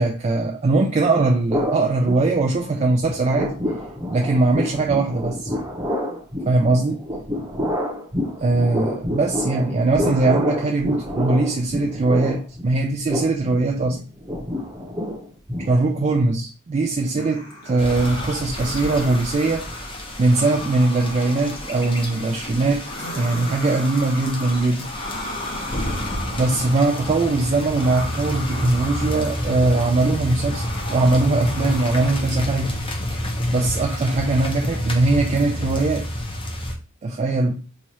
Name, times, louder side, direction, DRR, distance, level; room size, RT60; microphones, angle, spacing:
voice 1, 0.0-3.6 4.1-5.5 6.5-7.0 8.4-14.0 15.7-19.7 20.2-22.9 23.2-24.9 26.3-30.6 30.9-32.7 33.1-33.2 33.5-36.1 37.0-37.5, right 2 dB, 30° right, 0.3 m, -21 dB
sound 1, 1.5-2.7 3.0-16.2, left 1 dB, 15° right, 0.8 m, -28 dB
sound 2, 17.2-32.2, left 1 dB, 70° left, 0.9 m, -36 dB
sound 3, 17.8-36.8, equal, 25° left, 0.7 m, -29 dB
3.0 x 2.4 x 4.1 m
head